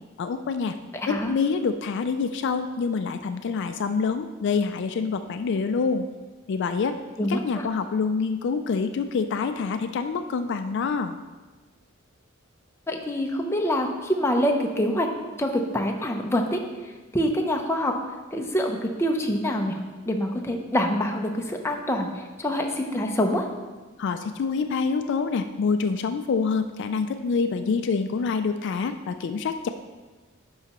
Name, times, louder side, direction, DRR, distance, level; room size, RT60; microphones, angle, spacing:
voice 1, 0.2-0.8 1.1-6.1 6.5-11.2 24.0-29.7, left 5 dB, 60° left, 8 dB, 0.3 m, -26 dB
voice 2, 0.9-1.3 7.2-7.7 12.9-15.1 15.4-16.6 17.1-18.0 18.3-19.8 20.1-23.5, equal, 10° left, 2 dB, 0.6 m, -25 dB
10.5 x 5.6 x 3.0 m, 1.3 s
head